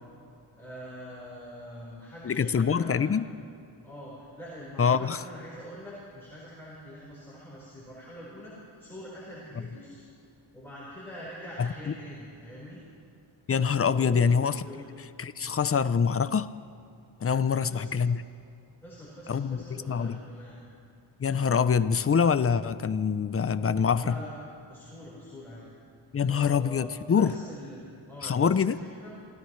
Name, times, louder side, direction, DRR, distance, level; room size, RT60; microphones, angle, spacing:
voice 1, 0.5-3.2 3.8-10.0 10.5-12.8 13.9-14.3 14.6-14.8 17.5-18.0 18.8-20.6 23.9-25.7 26.2-29.2, equal, 5° left, -8 dB, 4.5 m, -44 dB
voice 2, 2.2-3.3 4.8-5.2 11.6-11.9 13.5-14.6 15.2-16.5 17.2-18.2 19.3-20.2 21.2-24.2 26.1-27.3 28.2-28.8, left 6 dB, 30° left, 14 dB, 0.5 m, -25 dB
26.5 x 15.5 x 3.2 m, 2.5 s
wide cardioid pair, 110°, 50 cm